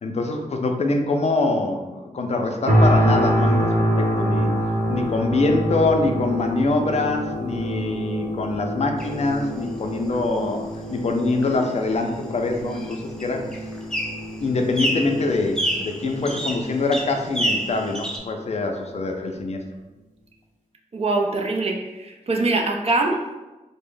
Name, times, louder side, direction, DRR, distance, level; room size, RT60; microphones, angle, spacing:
voice 1, 0.0-4.5 4.9-13.4 14.4-19.6, left 3 dB, 55° left, 3 dB, 0.4 m, -24 dB
sound 1, 2.7-17.7 18.2-18.3, equal, 75° right, 0.8 m, -26 dB
sound 2, 9.0-18.2, equal, 5° left, 0.5 m, -31 dB
voice 2, 20.9-23.3, right 2 dB, 50° right, 1 dB, 0.5 m, -23 dB
3.4 x 2.0 x 3.7 m, 1.1 s
wide cardioid pair, 125°, 14 cm